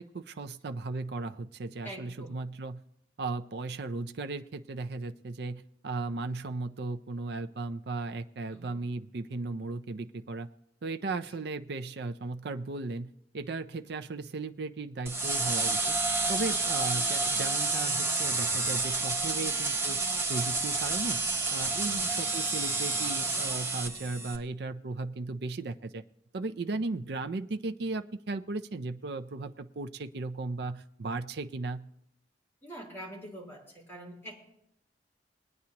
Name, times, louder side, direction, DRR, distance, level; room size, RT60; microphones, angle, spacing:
voice 1, 0.0-2.8 3.2-10.5 10.8-15.9 16.3-20.0 20.3-26.0 26.3-31.9, right 3 dB, 65° right, 7 dB, 0.5 m, -36 dB
voice 2, 1.8-2.4 8.5-8.8 11.3-11.4 16.2-16.4 19.3-19.6 21.8-22.1 32.6-34.5, right 1 dB, 15° left, -3 dB, 4.0 m, -45 dB
sound 1, 15.1-24.4, right 3 dB, 15° right, 1.1 m, -29 dB
20.5 x 9.4 x 2.9 m, 0.77 s
head